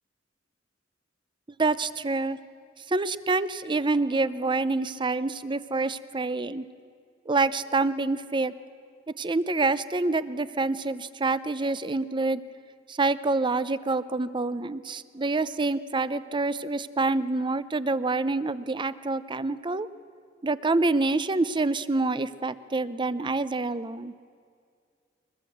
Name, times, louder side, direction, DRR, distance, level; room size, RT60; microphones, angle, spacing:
voice 1, 1.6-2.4 2.9-6.6 7.3-8.5 9.2-12.4 12.9-19.9 20.4-24.1, right 3 dB, 25° right, 15 dB, 0.6 m, -27 dB
23.5 x 21.0 x 7.9 m, 2.2 s
head